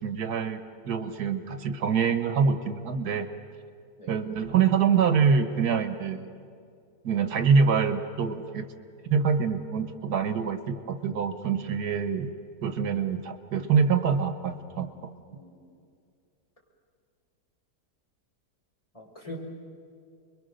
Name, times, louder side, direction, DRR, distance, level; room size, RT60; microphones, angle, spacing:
voice 1, 0.0-3.3 4.1-6.2 7.0-8.7 9.1-12.3 12.6-14.9, right 6 dB, 85° right, 9 dB, 1.7 m, -25 dB
voice 2, 18.9-19.4, left 1 dB, 20° left, -2 dB, 4.9 m, -43 dB
30.0 x 22.5 x 6.6 m, 2.3 s
omnidirectional pair, 1.6 m